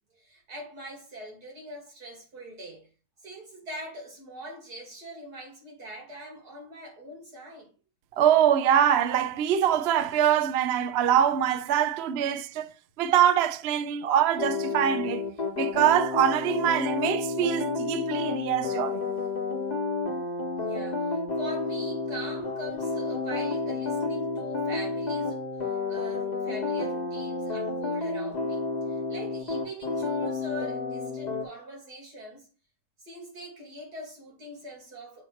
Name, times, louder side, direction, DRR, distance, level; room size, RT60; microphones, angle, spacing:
voice 1, 0.1-2.9 3.2-7.7 20.5-25.4 25.9-32.5 33.0-35.3, equal, 80° right, 3.0 m, -42 dB
voice 2, 8.2-12.7 13.0-15.3 15.6-19.1, right 9 dB, 65° right, 0.6 m, -24 dB
sound 1, 14.4-31.4, left 3 dB, 30° left, 1.1 m, -30 dB
7.0 x 3.1 x 5.6 m
omnidirectional pair, 1.7 m